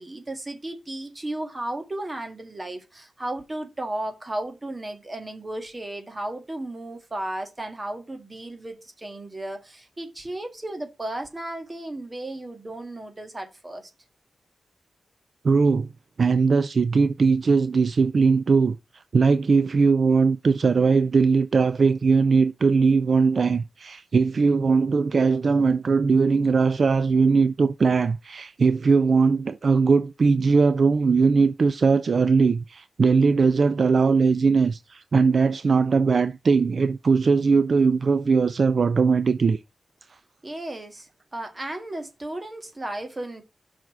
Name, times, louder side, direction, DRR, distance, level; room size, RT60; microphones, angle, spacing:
voice 1, 0.0-13.9 40.4-43.4, right 1 dB, 20° right, 1.7 m, -34 dB
voice 2, 15.4-15.9 16.2-18.8 19.1-39.6, right 4 dB, 50° right, 0.4 m, -20 dB
5.8 x 4.6 x 4.6 m
wide cardioid pair, 130°, 0 cm